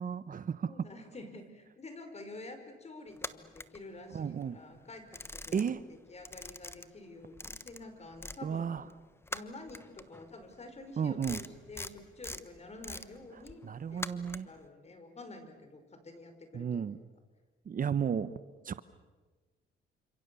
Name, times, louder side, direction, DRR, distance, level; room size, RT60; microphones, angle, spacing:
voice 1, 0.0-0.7 4.1-4.6 5.5-5.8 8.4-8.8 11.0-11.4 13.6-14.5 16.5-17.0 17.7-18.3 18.6-18.8, right 7 dB, 45° right, 14 dB, 1.0 m, -33 dB
voice 2, 0.6-5.8 6.1-8.8 9.3-13.6 13.9-16.8, left 2 dB, 35° left, 7 dB, 5.2 m, -49 dB
sound 1, 3.1-4.4 4.8-5.9 6.2-8.4 8.7-14.6, left 2 dB, 10° left, 1.2 m, -44 dB
29.5 x 27.0 x 7.0 m, 1.3 s
cardioid pair, 90°, 20 cm